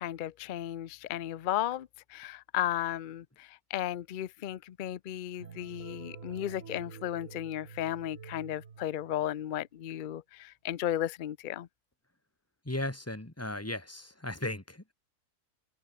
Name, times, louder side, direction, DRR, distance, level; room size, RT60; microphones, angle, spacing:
voice 1, 0.0-11.7, left 12 dB, 70° left, 0.4 m, -35 dB
sound 1, 5.4-9.5, right 6 dB, 55° right, 1.9 m, -48 dB
voice 2, 12.6-14.9, left 1 dB, 10° left, 2.1 m, -36 dB
open air
omnidirectional pair, 1.6 m